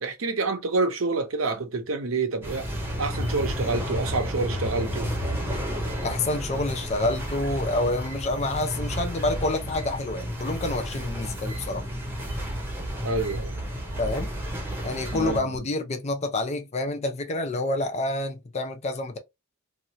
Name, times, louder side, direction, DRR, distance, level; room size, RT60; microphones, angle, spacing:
voice 1, 0.0-2.7 3.0-5.1 13.0-13.5 15.1-15.5, right 3 dB, 90° right, 0.8 m, -27 dB
sound 1, 2.4-15.4, equal, 10° right, 0.9 m, -31 dB
voice 2, 6.0-11.8 14.0-14.3 14.8-19.2, left 2 dB, 35° left, 0.5 m, -28 dB
2.8 x 2.4 x 2.8 m
head